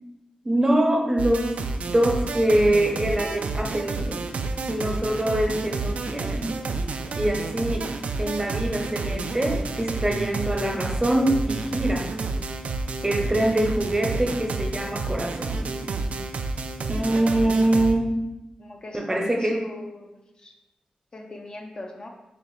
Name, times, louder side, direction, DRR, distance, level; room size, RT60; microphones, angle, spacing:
voice 1, 0.4-1.6 1.9-4.2 4.7-6.6 7.1-7.9 8.2-12.1 13.0-15.7 16.9-18.2 18.9-19.6, right 1 dB, 20° right, 2 dB, 0.6 m, -24 dB
sound 1, 1.2-17.9, right 3 dB, 70° right, 0.4 m, -30 dB
voice 2, 18.6-20.5 21.1-22.1, left 2 dB, 40° left, 2 dB, 0.6 m, -40 dB
6.8 x 2.4 x 3.2 m, 0.99 s
wide cardioid pair, 95°, 2 cm